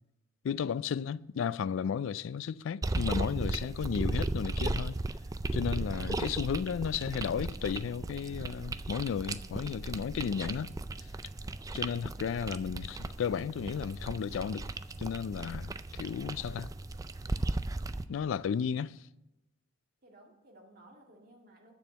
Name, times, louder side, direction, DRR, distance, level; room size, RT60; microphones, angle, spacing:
voice 1, 0.4-5.0 5.5-10.7 11.7-14.7 15.0-16.7 18.1-19.0, left 7 dB, 75° left, 0.3 m, -34 dB
sound 1, 2.8-18.1, right 2 dB, 15° right, 0.3 m, -36 dB
voice 2, 20.0-21.8, right 1 dB, 45° right, 1.9 m, -58 dB
8.0 x 7.2 x 7.8 m
head